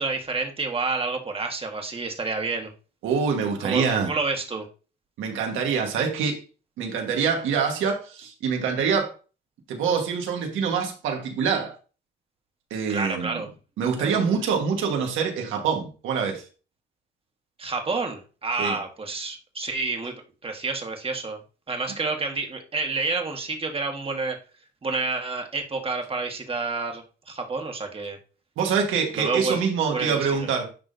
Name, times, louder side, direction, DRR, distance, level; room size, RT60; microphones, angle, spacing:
voice 1, 0.0-2.7 3.6-4.7 12.9-13.5 14.0-14.4 17.6-20.1 20.4-21.4 21.7-24.4 24.8-28.2 29.1-29.6 29.9-30.5, right 3 dB, 30° right, 1.5 m, -29 dB
voice 2, 3.0-4.1 5.2-6.4 6.8-9.1 9.7-11.8 12.7-13.4 13.8-16.5 18.6-18.8 28.6-30.8, right 6 dB, 85° right, 1.4 m, -25 dB
10.5 x 3.5 x 2.6 m
cardioid pair, 90°, 20 cm